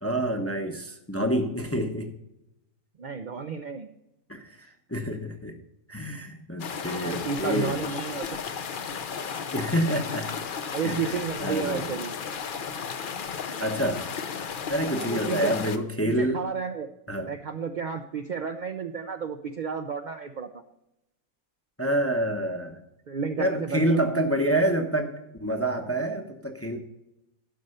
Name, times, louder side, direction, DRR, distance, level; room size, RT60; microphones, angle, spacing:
voice 1, 0.0-2.1 4.3-5.6 5.9-7.8 9.5-10.5 10.8-11.9 13.6-14.1 14.7-16.4 17.1-17.3 21.8-22.8 23.4-25.1 25.4-26.8, right 1 dB, 15° left, 4 dB, 0.6 m, -27 dB
voice 2, 3.0-3.9 7.0-8.3 10.7-12.2 15.0-15.5 16.0-16.9 17.2-20.6 23.1-24.0, right 6 dB, 60° right, 7 dB, 0.5 m, -32 dB
sound 1, 6.6-15.8, left 6 dB, 50° left, 0.6 m, -34 dB
11.5 x 5.5 x 6.5 m, 0.87 s
omnidirectional pair, 1.5 m